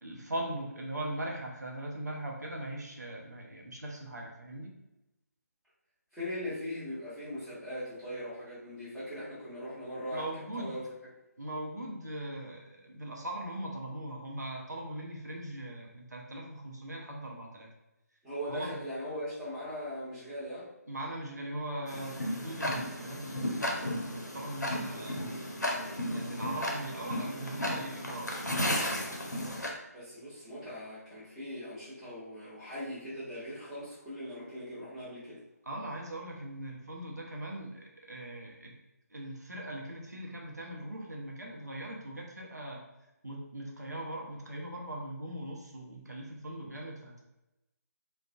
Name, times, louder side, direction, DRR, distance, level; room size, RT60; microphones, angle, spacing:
voice 1, 0.0-4.7 10.1-10.8 11.4-17.7 18.4-18.8 20.9-25.2 26.1-28.7 35.6-38.8 39.1-42.9 43.2-47.2, right 1 dB, 75° right, -1 dB, 0.6 m, -40 dB
voice 2, 6.1-10.2 10.5-10.8 18.2-20.6 29.9-35.4, equal, 5° right, -14 dB, 0.7 m, -40 dB
Tick-tock, 21.9-29.7, left 1 dB, 90° left, 0.5 m, -34 dB
2.4 x 2.1 x 2.5 m, 0.96 s
figure-of-eight pair, 145°, 9 cm